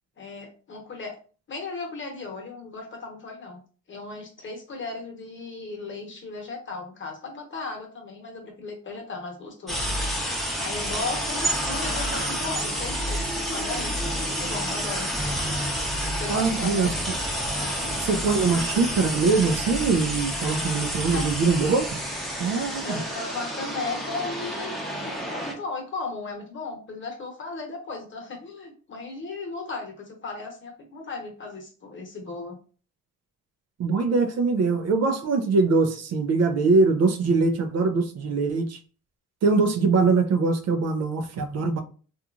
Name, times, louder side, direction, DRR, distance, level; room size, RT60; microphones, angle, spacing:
voice 1, 0.2-1.2 1.5-3.6 3.9-9.9 10.6-15.1 16.1-17.0 17.4-17.9 21.1-21.3 22.8-24.7 25.0-32.6, left 3 dB, 40° left, 1.0 m, -36 dB
sound 1, 9.7-25.5, equal, ahead, 0.8 m, -29 dB
voice 2, 16.3-17.2 18.0-22.0 22.4-23.0 33.8-38.8 39.4-41.8, right 4 dB, 60° right, 0.5 m, -23 dB
2.9 x 2.4 x 2.4 m
cardioid pair, 90°, 30 cm